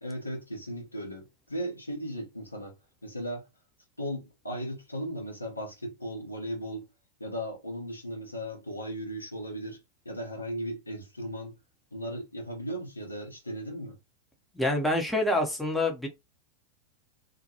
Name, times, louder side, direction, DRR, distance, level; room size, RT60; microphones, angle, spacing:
voice 1, 0.0-2.7 3.0-3.5 4.0-6.9 7.2-9.8 10.0-11.6 11.9-14.0, equal, 80° left, 0.7 m, -36 dB
voice 2, 14.5-16.1, left 1 dB, ahead, 0.7 m, -26 dB
2.2 x 2.2 x 2.8 m
figure-of-eight pair, 90°, 0 cm